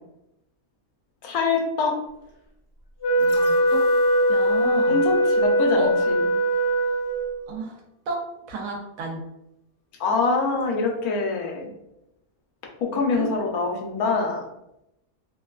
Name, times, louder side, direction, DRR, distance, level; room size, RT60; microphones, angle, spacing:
voice 1, 1.2-1.9 4.9-6.2 10.0-11.7 12.8-14.5, left 3 dB, 90° left, 1 dB, 1.1 m, -24 dB
Wind instrument woodwind instrument, 3.0-7.4, right 1 dB, 30° left, 0.5 m, -21 dB
sound 1, 3.2-6.3 6.7-6.8, left 6 dB, 65° left, 0.8 m, -39 dB
voice 2, 3.2-3.8 4.3-5.0 5.7-5.9 7.5-7.8 8.1-9.2 13.1-13.3, right 2 dB, 75° right, 0 dB, 1.1 m, -32 dB
3.2 x 2.2 x 2.2 m, 0.84 s
omnidirectional pair, 1.5 m